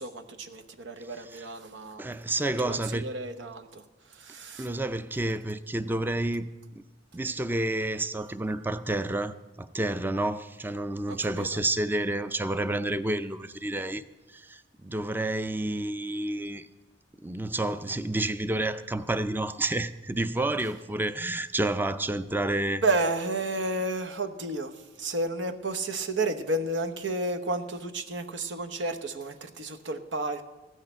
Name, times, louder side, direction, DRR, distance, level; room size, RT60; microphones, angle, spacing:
voice 1, 0.0-2.1 2.4-4.7 11.1-11.5 22.7-30.4, right 2 dB, 85° right, 1.0 m, -32 dB
voice 2, 2.0-3.1 4.6-6.5 6.8-6.9 7.1-14.0 14.3-16.7 17.2-22.8, right 2 dB, 10° right, 0.4 m, -30 dB
15.0 x 6.5 x 9.0 m
head